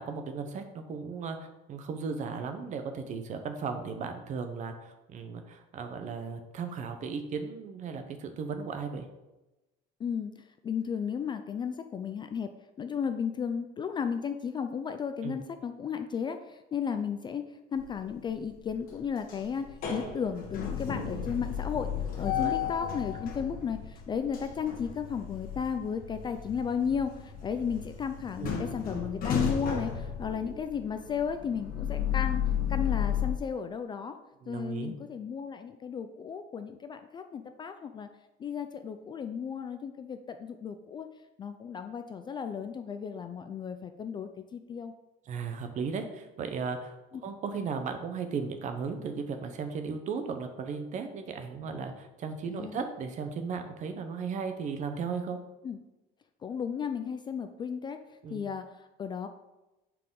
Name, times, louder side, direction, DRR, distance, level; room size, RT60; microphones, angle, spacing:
voice 1, 0.0-9.1 15.2-15.4 22.2-22.6 28.4-28.6 34.4-34.9 45.3-47.0 47.2-55.4 58.2-58.5, right 5 dB, 40° right, 7 dB, 0.9 m, -36 dB
voice 2, 10.0-10.3 10.6-12.5 12.8-32.4 32.7-34.2 34.5-38.1 38.4-41.1 41.4-44.9 52.5-52.8 55.6-55.8 56.4-58.0 58.3-59.3, left 7 dB, 25° left, 8 dB, 0.4 m, -34 dB
sound 1, 17.8-18.3 18.7-33.3, left 8 dB, 45° left, 1.5 m, -34 dB
9.5 x 4.7 x 3.9 m, 1.0 s
cardioid pair, 155°, 20 cm